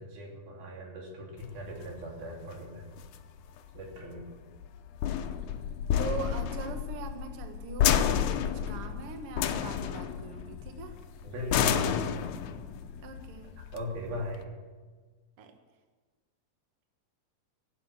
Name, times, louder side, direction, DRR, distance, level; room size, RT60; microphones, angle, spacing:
voice 1, 0.0-2.9 3.7-4.3 11.2-12.0 13.6-14.5, left 1 dB, 90° right, 0 dB, 4.6 m, -38 dB
sound 1, 1.4-14.4, left 10 dB, 70° left, 2.0 m, -31 dB
voice 2, 6.0-11.0 13.0-13.5 15.4-15.5, right 5 dB, 55° right, 5 dB, 1.8 m, -41 dB
17.0 x 9.1 x 7.6 m, 1.4 s
omnidirectional pair, 4.1 m